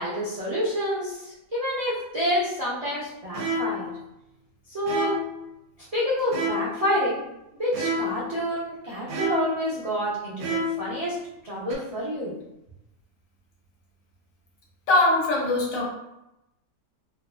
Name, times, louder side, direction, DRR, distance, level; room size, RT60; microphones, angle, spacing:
voice 1, 0.0-3.9 4.7-5.2 5.9-7.2 7.6-11.2 11.4-12.3, equal, 50° right, -9 dB, 0.4 m, -28 dB
sound 1, 3.3-4.0 4.9-5.4 6.3-6.9 7.7-8.3 9.1-9.7 10.4-10.9 11.7-11.8, equal, 75° right, 1.0 m, -29 dB
voice 2, 14.9-15.8, left 2 dB, 70° left, -3 dB, 1.1 m, -21 dB
2.6 x 2.3 x 2.4 m, 0.88 s
omnidirectional pair, 1.6 m